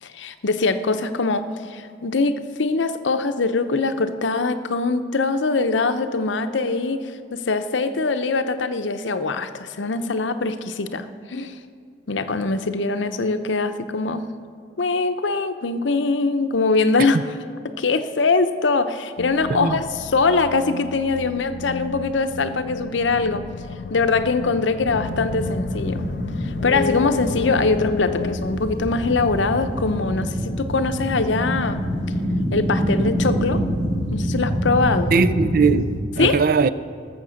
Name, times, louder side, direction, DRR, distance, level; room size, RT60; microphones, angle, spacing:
voice 1, 0.0-11.6 12.1-14.3 14.8-17.2 17.6-23.4 23.9-26.1 26.4-31.8 32.5-33.6 34.1-35.1 36.2-36.4, left 3 dB, 85° left, 0.7 m, -22 dB
sound 1, 19.2-28.4, left 5 dB, 50° left, 0.3 m, -32 dB
voice 2, 19.5-19.8 35.1-36.7, right 4 dB, 50° right, 0.4 m, -19 dB
sound 2, 24.8-36.0, equal, 75° right, 3.8 m, -26 dB
19.0 x 7.1 x 6.4 m
head